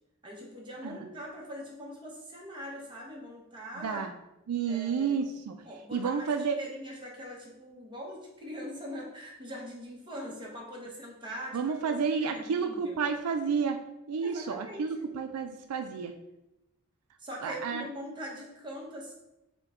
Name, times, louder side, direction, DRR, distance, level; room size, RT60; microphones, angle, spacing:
voice 1, 0.2-4.0 4.7-5.2 5.7-12.0 12.3-13.0 14.2-15.0 17.2-19.1, equal, 20° right, -2 dB, 1.0 m, -42 dB
voice 2, 3.8-4.1 4.5-5.6 5.9-6.6 11.5-13.8 14.1-16.1 17.4-17.8, right 6 dB, 85° right, 6 dB, 0.4 m, -30 dB
6.1 x 2.2 x 3.6 m, 0.90 s
head